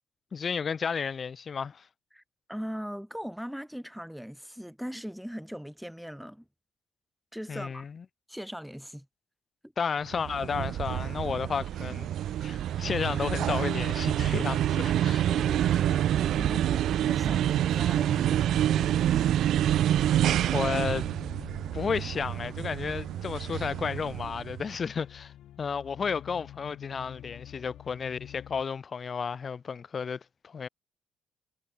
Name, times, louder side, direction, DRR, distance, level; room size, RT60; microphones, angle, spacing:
voice 1, 0.3-1.9 7.5-8.0 9.8-12.1 12.4-15.3 20.5-21.1 21.7-25.3 25.6-30.7, left 6 dB, 45° left, 3.9 m, -32 dB
voice 2, 2.5-6.5 7.3-7.9 8.3-9.1 9.6-9.7 14.9-19.4, equal, ahead, 3.0 m, -40 dB
sound 1, 10.1-24.6, right 11 dB, 75° right, 1.3 m, -27 dB
sound 2, 12.1-28.6, left 12 dB, 75° left, 4.1 m, -49 dB
cardioid pair, 90°, 0 cm